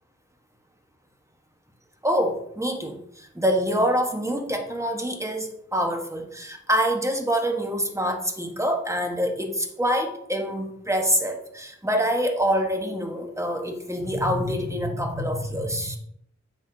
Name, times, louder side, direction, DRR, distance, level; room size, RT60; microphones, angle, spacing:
voice 1, 2.0-16.0, equal, 10° right, 3 dB, 1.4 m, -26 dB
10.0 x 7.2 x 2.9 m, 0.73 s
wide cardioid pair, 40°, 30 cm